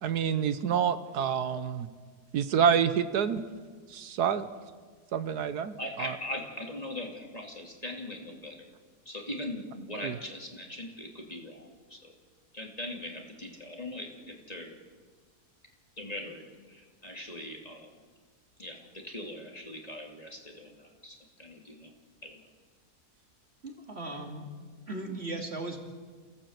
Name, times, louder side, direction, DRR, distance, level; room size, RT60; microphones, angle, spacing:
voice 1, 0.0-1.9 2.3-3.4 3.9-4.5 5.1-6.1 10.0-10.1, right 7 dB, 85° right, 12 dB, 1.5 m, -27 dB
voice 2, 5.8-12.1 12.5-14.8 16.0-17.9 18.6-21.9 22.2-22.5, left 1 dB, 25° left, 1 dB, 2.6 m, -41 dB
voice 3, 23.6-24.5 24.9-25.8, right 2 dB, 40° right, 2 dB, 2.9 m, -37 dB
28.5 x 16.0 x 8.1 m, 1.5 s
omnidirectional pair, 1.7 m